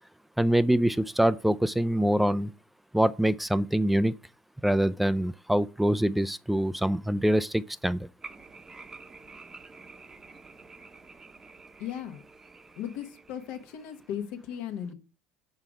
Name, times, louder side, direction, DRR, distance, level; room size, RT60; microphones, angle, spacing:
voice 1, 0.4-2.5 2.9-4.1 4.6-8.1, right 1 dB, 5° right, 0.3 m, -24 dB
sound 1, 8.2-14.2, right 4 dB, 20° right, 0.8 m, -49 dB
voice 2, 11.8-12.2 12.8-14.9, left 9 dB, 75° left, 1.1 m, -36 dB
5.8 x 4.8 x 5.0 m
supercardioid pair, 100°, 3 cm